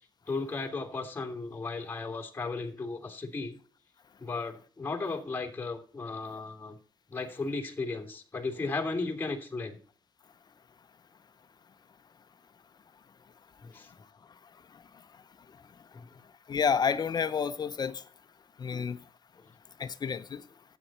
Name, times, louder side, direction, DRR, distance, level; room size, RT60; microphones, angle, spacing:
voice 1, 0.3-3.6 4.2-6.8 7.1-9.8 13.6-13.9 15.9-16.1 18.7-18.8, left 3 dB, 25° left, 3.1 m, -35 dB
voice 2, 16.5-18.0 18.6-19.0 19.8-20.4, left 6 dB, 50° left, 0.7 m, -29 dB
12.5 x 9.1 x 4.3 m
cardioid pair, 85°, 9 cm